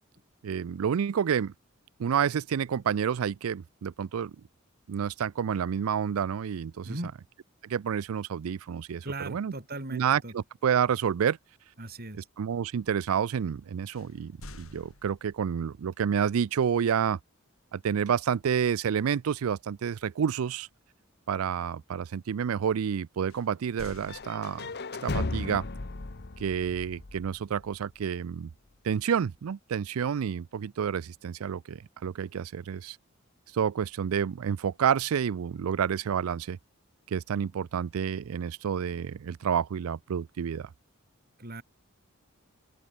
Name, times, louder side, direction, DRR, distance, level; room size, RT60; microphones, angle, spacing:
voice 1, 0.4-1.5 2.0-4.3 4.9-7.0 7.6-9.5 9.9-11.4 12.4-17.2 17.7-20.7 21.3-24.7 25.0-25.6 26.4-28.5 28.8-33.0 33.5-36.6 37.1-40.7, right 7 dB, 90° right, 0.4 m, -29 dB
voice 2, 9.0-10.3 11.8-12.3 41.4-41.6, right 2 dB, 50° right, 4.3 m, -38 dB
sound 1, 13.9-15.6 18.3-18.6 19.0-19.3 23.3-25.0, left 1 dB, 80° left, 6.5 m, -49 dB
sound 2, 24.1-28.0, left 2 dB, 50° left, 1.1 m, -36 dB
open air
head